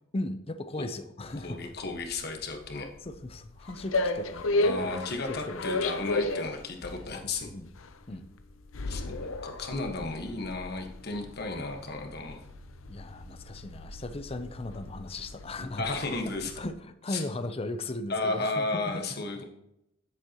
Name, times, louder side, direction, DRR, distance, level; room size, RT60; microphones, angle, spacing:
voice 1, 0.1-1.7 3.0-6.0 7.5-7.7 8.1-8.2 9.0-9.1 12.9-16.0 16.6-19.2, left 2 dB, 30° left, 10 dB, 0.6 m, -37 dB
sound 1, 1.2-16.7, left 2 dB, 85° left, 0.7 m, -35 dB
voice 2, 1.4-2.9 4.6-7.5 8.9-12.4 15.6-16.5 17.1-17.2 18.1-19.4, left 3 dB, 50° left, 3 dB, 1.4 m, -33 dB
9.6 x 8.1 x 3.0 m, 0.82 s
head